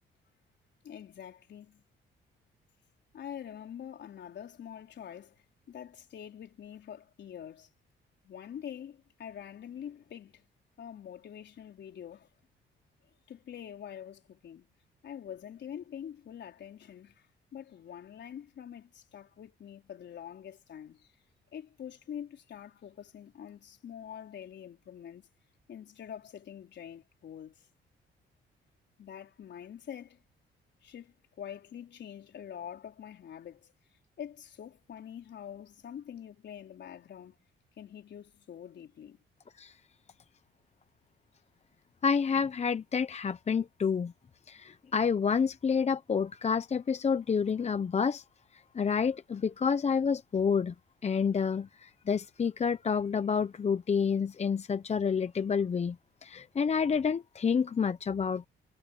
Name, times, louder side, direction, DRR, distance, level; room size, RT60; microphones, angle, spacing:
voice 1, 0.8-1.8 3.1-7.7 8.2-10.5 10.8-12.3 13.3-14.7 15.0-21.1 21.5-25.3 25.7-27.7 29.0-30.2 30.8-33.7 34.2-37.4 37.8-39.2, left 9 dB, 60° left, 4.1 m, -45 dB
voice 2, 42.0-44.1 44.5-48.2 48.5-50.7 51.0-56.0 56.2-58.5, left 6 dB, 35° left, 0.8 m, -29 dB
cardioid pair, 90°, 20 cm